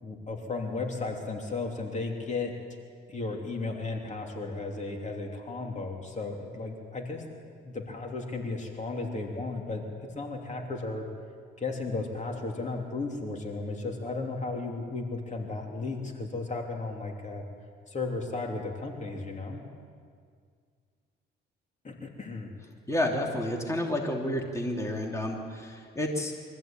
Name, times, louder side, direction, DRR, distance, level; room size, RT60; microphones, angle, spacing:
voice 1, 0.0-2.6 3.1-9.8 10.1-11.1 11.6-17.4 17.9-19.6 21.8-22.5, left 3 dB, 35° left, 1 dB, 3.2 m, -34 dB
voice 2, 22.9-26.3, left 1 dB, 15° left, 0 dB, 3.0 m, -30 dB
24.0 x 15.0 x 9.0 m, 2.1 s
cardioid pair, 90°, 20 cm